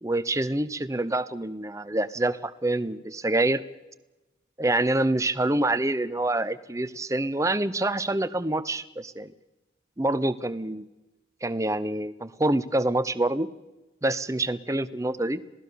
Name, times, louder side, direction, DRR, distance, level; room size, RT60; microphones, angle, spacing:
voice 1, 0.0-3.6 4.6-9.3 10.0-10.8 11.4-13.5 14.0-15.4, right 2 dB, 15° right, 13 dB, 0.7 m, -26 dB
26.5 x 17.5 x 6.9 m, 1.0 s
head